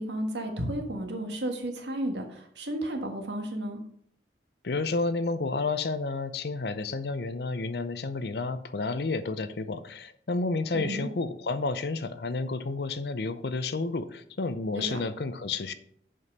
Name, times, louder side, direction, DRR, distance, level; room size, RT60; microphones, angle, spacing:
voice 1, 0.0-3.8 10.7-11.1 14.8-15.0, right 1 dB, 90° right, 4 dB, 1.6 m, -33 dB
voice 2, 4.6-15.7, left 3 dB, 70° left, 12 dB, 0.6 m, -31 dB
6.8 x 5.2 x 5.5 m, 0.65 s
head